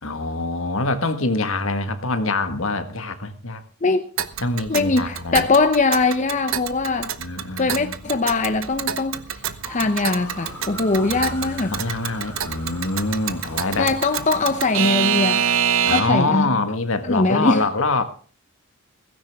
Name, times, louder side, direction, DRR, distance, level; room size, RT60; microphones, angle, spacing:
voice 1, 0.0-3.6 4.4-5.5 7.2-8.0 11.0-13.9 15.8-18.0, left 2 dB, 60° left, 1.6 m, -25 dB
voice 2, 3.8-4.1 4.7-7.1 7.6-9.2 9.7-11.8 13.8-15.5 15.9-16.5 17.0-17.6, left 3 dB, 35° left, 0.7 m, -21 dB
Alarm / Clock, 4.2-16.3, right 8 dB, 60° right, 0.9 m, -27 dB
sound 1, 9.6-15.4, left 1 dB, 10° left, 5.5 m, -40 dB
17.0 x 15.5 x 3.5 m
head